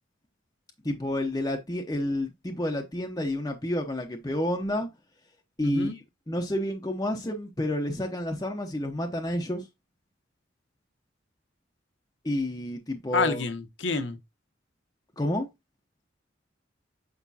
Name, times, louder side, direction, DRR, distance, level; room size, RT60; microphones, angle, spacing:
voice 1, 0.8-4.9 5.6-9.7 12.2-13.4 15.2-15.5, left 1 dB, 20° left, 0.8 m, -30 dB
voice 2, 5.6-5.9 13.1-14.2, left 4 dB, 75° left, 1.0 m, -28 dB
8.3 x 5.0 x 2.8 m
head